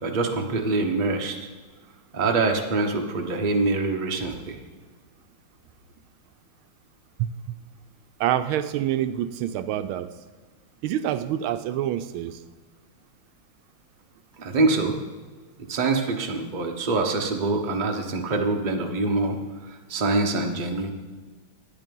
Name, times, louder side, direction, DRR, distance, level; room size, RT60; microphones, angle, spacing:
voice 1, 0.0-1.4 2.1-4.6 14.4-15.0 15.6-20.9, right 3 dB, 30° right, 3 dB, 0.9 m, -25 dB
voice 2, 7.2-7.6 8.2-10.1 10.8-12.4, right 11 dB, 80° right, 11 dB, 1.4 m, -27 dB
12.0 x 9.6 x 5.3 m, 1.4 s
omnidirectional pair, 2.4 m